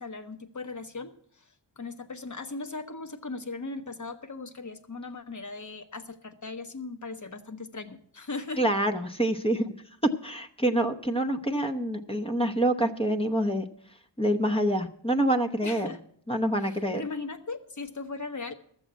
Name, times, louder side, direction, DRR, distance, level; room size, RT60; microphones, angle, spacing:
voice 1, 0.0-1.5 1.8-8.6 15.6-16.0 16.6-18.5, left 3 dB, 45° left, 7 dB, 1.2 m, -38 dB
voice 2, 8.6-9.8 10.2-13.6 14.2-16.0 16.3-17.0, right 1 dB, 15° left, 4 dB, 0.8 m, -26 dB
13.0 x 7.3 x 8.1 m, 0.64 s
wide cardioid pair, 105°, 42 cm